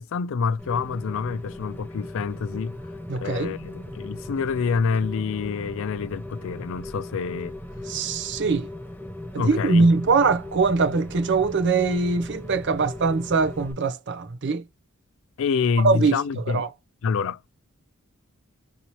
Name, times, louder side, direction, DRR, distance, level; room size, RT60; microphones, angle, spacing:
voice 1, 0.0-2.8 3.2-7.6 9.4-9.9 15.4-16.6 17.0-17.5, left 5 dB, 60° left, 0.4 m, -27 dB
Rain, 0.6-13.7, left 1 dB, 10° left, 0.7 m, -38 dB
voice 2, 3.1-3.5 7.9-8.7 9.3-14.6 15.8-16.7, right 4 dB, 55° right, 0.6 m, -22 dB
3.9 x 2.8 x 3.0 m
head